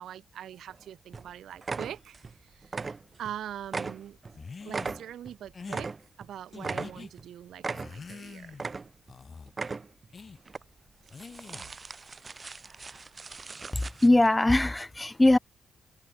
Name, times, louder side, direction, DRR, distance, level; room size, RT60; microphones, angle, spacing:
voice 1, 0.0-2.2 2.4-2.8 3.2-4.2 4.6-5.9 6.2-8.6, right 10 dB, 85° right, 7.4 m, -42 dB
sound 1, 0.7-0.8 1.1-1.3 1.6-2.4 2.6-3.4 3.7-6.3 6.6-7.3 7.6-8.2 8.5-9.2 9.5-10.1 10.5-10.6 11.1-14.1, right 4 dB, 30° right, 7.0 m, -38 dB
sound 2, 4.3-5.0 5.5-5.9 6.5-7.1 7.7-8.7 9.1-9.5 10.1-10.4 11.1-11.7, left 4 dB, 35° left, 5.2 m, -44 dB
voice 2, 13.7-15.4, left 2 dB, 10° left, 2.7 m, -21 dB
cardioid pair, 125°, 0 cm